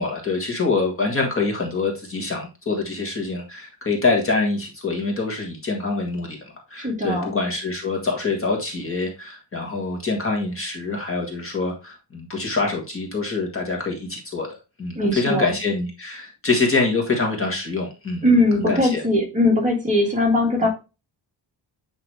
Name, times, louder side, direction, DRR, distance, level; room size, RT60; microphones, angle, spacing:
voice 1, 0.0-14.5 14.8-18.2 18.6-19.0, left 3 dB, 30° left, 1 dB, 1.6 m, -25 dB
voice 2, 6.8-7.4 14.9-15.5 18.2-20.7, left 1 dB, 15° right, -1 dB, 1.7 m, -20 dB
8.9 x 3.2 x 3.3 m, 0.29 s
wide cardioid pair, 175°, 43 cm